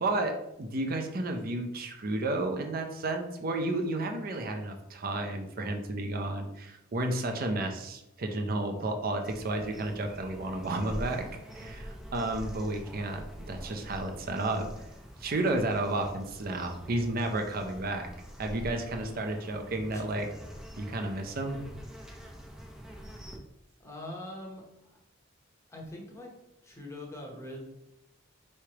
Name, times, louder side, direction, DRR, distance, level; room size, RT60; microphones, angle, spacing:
voice 1, 0.0-11.2 11.5-14.7 15.2-18.1 18.4-20.3 20.8-21.6, right 2 dB, 50° right, 4 dB, 0.6 m, -32 dB
sound 1, 9.2-23.4, equal, 5° right, 0.5 m, -45 dB
voice 2, 23.8-25.0 25.7-26.3 26.6-27.6, left 1 dB, 15° left, -1 dB, 0.9 m, -43 dB
4.6 x 3.2 x 2.9 m, 0.85 s
head